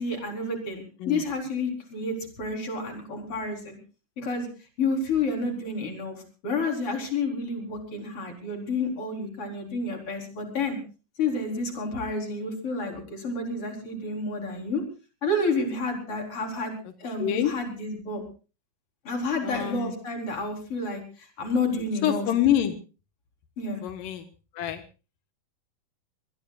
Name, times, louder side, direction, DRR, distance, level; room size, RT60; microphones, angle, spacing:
voice 1, 0.0-3.8 4.2-4.5 4.8-10.8 11.2-14.8 15.2-16.7 17.0-18.2 19.0-22.3 23.6-23.8, left 3 dB, 45° left, 2 dB, 4.9 m, -30 dB
voice 2, 17.2-17.5 19.4-19.9 22.0-22.8 23.8-24.3 24.5-24.8, left 11 dB, 90° left, 7 dB, 3.0 m, -26 dB
24.0 x 21.0 x 2.4 m, 0.35 s
omnidirectional pair, 3.8 m